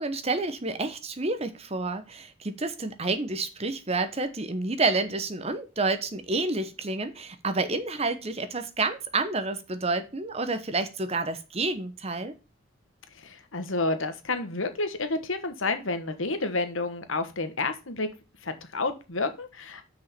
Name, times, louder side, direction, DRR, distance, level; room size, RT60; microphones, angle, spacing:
voice 1, 0.0-12.3, right 3 dB, 30° right, 9 dB, 1.0 m, -29 dB
voice 2, 13.2-18.1 18.4-19.9, left 3 dB, 75° left, 8 dB, 1.4 m, -30 dB
6.1 x 5.1 x 6.7 m, 0.30 s
head